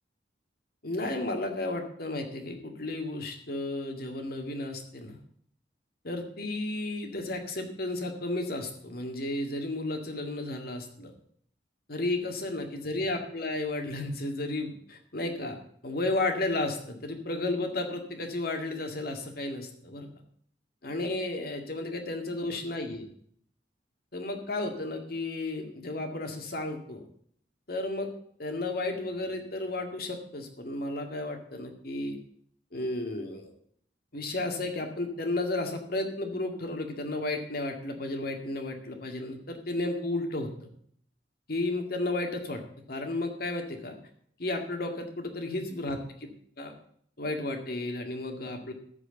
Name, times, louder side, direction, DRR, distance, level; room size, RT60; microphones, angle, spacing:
voice 1, 0.8-5.2 6.0-11.1 11.9-15.6 15.8-20.1 20.8-23.1 24.1-27.1 27.7-28.1 28.4-32.2 32.7-33.5 34.1-40.5 41.5-42.6 42.9-44.0 44.4-46.3 46.6-46.8 47.2-48.7, left 2 dB, 60° left, 5 dB, 2.0 m, -33 dB
14.0 x 4.9 x 8.1 m, 0.63 s
head